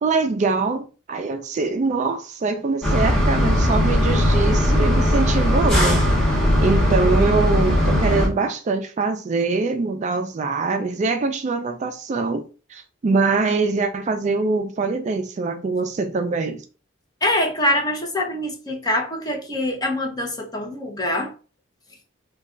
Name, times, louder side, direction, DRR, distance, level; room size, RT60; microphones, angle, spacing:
voice 1, 0.0-6.0 6.6-12.4 12.7-16.6, right 4 dB, 35° right, 0.3 m, -23 dB
sound 1, 2.8-8.3, left 1 dB, 5° left, 1.3 m, -18 dB
voice 2, 17.2-21.3, left 1 dB, 20° left, 0.7 m, -24 dB
3.1 x 2.3 x 3.7 m
head